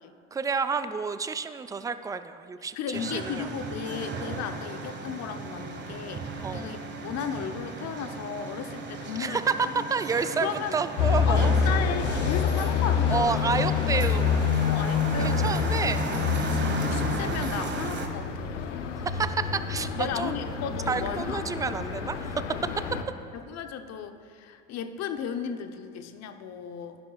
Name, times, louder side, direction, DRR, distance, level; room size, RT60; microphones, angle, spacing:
voice 1, 0.3-3.5 6.4-6.7 9.2-11.5 13.1-14.5 15.2-16.0 19.0-20.5 20.9-22.3, right 5 dB, 10° right, 11 dB, 0.3 m, -29 dB
voice 2, 2.7-9.8 10.4-10.8 11.3-13.5 14.1-14.2 14.6-18.7 19.9-21.4 23.3-27.0, left 7 dB, 45° left, 8 dB, 0.8 m, -35 dB
sound 1, 2.9-18.1, right 3 dB, 30° right, 1.4 m, -36 dB
sound 2, 11.0-23.0, left 6 dB, 85° left, 0.7 m, -27 dB
15.5 x 11.0 x 2.4 m, 2.3 s
hypercardioid pair, 75°, 36 cm